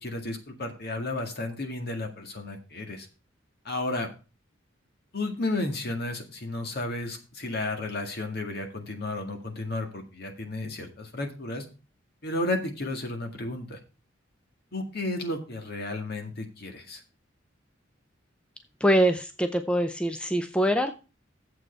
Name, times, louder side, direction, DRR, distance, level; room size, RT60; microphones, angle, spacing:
voice 1, 0.0-3.1 3.7-4.1 5.1-11.7 12.2-13.8 14.7-17.0, left 2 dB, 55° left, 4 dB, 1.9 m, -33 dB
voice 2, 18.8-20.9, equal, 5° left, 8 dB, 0.5 m, -24 dB
9.3 x 7.6 x 4.5 m, 0.33 s
head